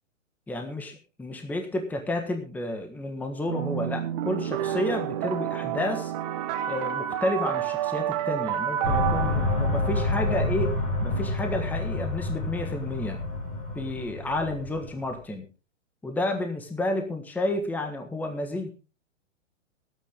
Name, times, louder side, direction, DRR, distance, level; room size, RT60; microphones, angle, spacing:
voice 1, 0.5-6.1 6.7-10.7 11.0-13.2 13.7-15.5 16.0-18.7, left 1 dB, 5° left, 5 dB, 1.5 m, -31 dB
sound 1, 3.5-10.5, right 11 dB, 30° right, 1.2 m, -30 dB
sound 2, 8.8-15.1, left 2 dB, 30° left, 5.8 m, -28 dB
21.5 x 9.1 x 3.6 m, 0.32 s
hypercardioid pair, 145°, 38 cm